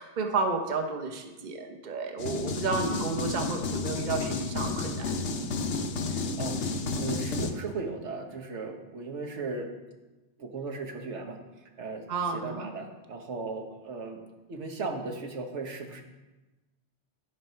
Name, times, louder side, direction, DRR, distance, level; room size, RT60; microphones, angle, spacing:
voice 1, 0.0-5.1 12.1-12.7, right 4 dB, 45° right, 4 dB, 1.0 m, -31 dB
sound 1, 2.2-7.5, left 3 dB, 85° left, 1.1 m, -31 dB
voice 2, 6.1-9.7 10.4-11.4 11.8-12.1 12.3-14.2 14.5-16.0, right 3 dB, 90° right, 3 dB, 1.4 m, -37 dB
11.5 x 4.6 x 5.6 m, 1.1 s
omnidirectional pair, 1.2 m